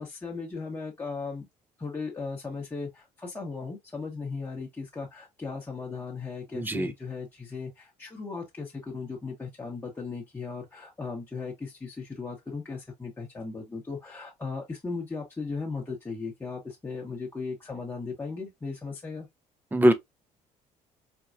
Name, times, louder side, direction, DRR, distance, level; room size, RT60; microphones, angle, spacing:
voice 1, 0.0-1.5 1.8-19.3, left 4 dB, 15° left, 1.0 m, -37 dB
voice 2, 6.5-6.9 19.7-19.9, right 1 dB, 15° right, 0.6 m, -21 dB
4.3 x 2.2 x 2.4 m
cardioid pair, 95°, 13 cm